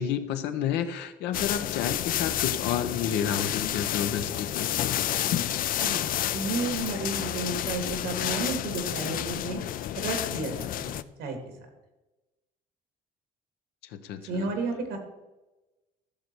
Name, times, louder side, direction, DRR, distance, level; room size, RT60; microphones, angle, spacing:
voice 1, 0.0-5.6 13.9-14.5, left 8 dB, 85° left, 9 dB, 0.9 m, -31 dB
sound 1, 1.3-11.0, left 12 dB, 55° left, 0.5 m, -30 dB
voice 2, 5.8-9.6 10.0-11.4 14.1-15.0, right 3 dB, 85° right, 5 dB, 2.4 m, -32 dB
14.5 x 6.6 x 4.6 m, 1.1 s
cardioid pair, 110°, 17 cm